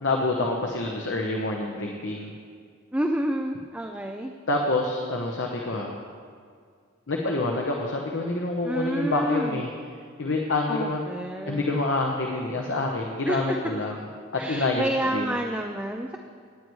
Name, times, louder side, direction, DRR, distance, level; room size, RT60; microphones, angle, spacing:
voice 1, 0.0-2.3 4.5-5.9 7.1-9.7 10.2-11.0 11.5-13.9 14.3-15.3, left 2 dB, 65° left, 0 dB, 0.9 m, -27 dB
voice 2, 2.9-4.3 8.6-9.6 10.7-11.8 13.3-13.6 14.4-16.2, right 1 dB, 5° right, 3 dB, 0.4 m, -29 dB
18.5 x 9.4 x 3.2 m, 2.1 s
head